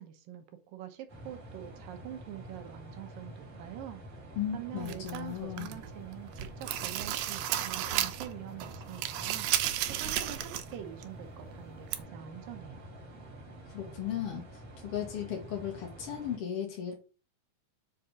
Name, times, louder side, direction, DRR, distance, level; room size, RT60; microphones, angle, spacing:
voice 1, 0.0-4.0 4.5-9.5 9.8-12.8, right 11 dB, 70° right, 7 dB, 2.4 m, -45 dB
sound 1, 1.1-16.4, right 1 dB, 30° right, 1.8 m, -48 dB
voice 2, 4.3-5.7 13.7-14.4 14.8-16.9, left 9 dB, 65° left, 1 dB, 1.4 m, -36 dB
sound 2, 4.9-5.9 6.3-8.3 8.6-10.7 11.0-11.1 11.9-12.0, right 12 dB, 90° right, 2.6 m, -33 dB
7.6 x 4.2 x 5.0 m, 0.33 s
omnidirectional pair, 4.4 m